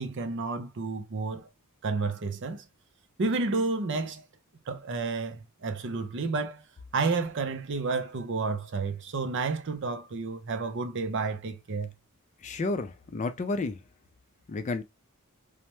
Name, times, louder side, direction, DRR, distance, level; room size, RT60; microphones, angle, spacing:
voice 1, 0.0-1.5 1.8-2.7 3.2-4.2 4.7-6.6 6.9-11.9, right 3 dB, 55° right, 0.5 m, -31 dB
voice 2, 12.4-13.8 14.5-14.8, left 3 dB, 35° left, 0.4 m, -31 dB
3.2 x 2.1 x 2.9 m
head